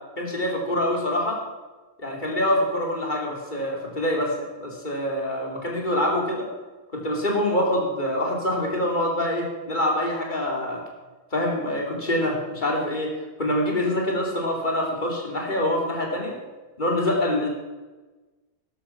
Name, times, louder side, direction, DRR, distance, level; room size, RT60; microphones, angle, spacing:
voice 1, 0.2-1.4 2.0-4.3 4.6-6.4 6.9-10.8 11.3-13.1 13.4-16.4 16.8-17.5, left 1 dB, 30° left, 0 dB, 3.0 m, -25 dB
13.0 x 12.0 x 5.8 m, 1.2 s
omnidirectional pair, 1.7 m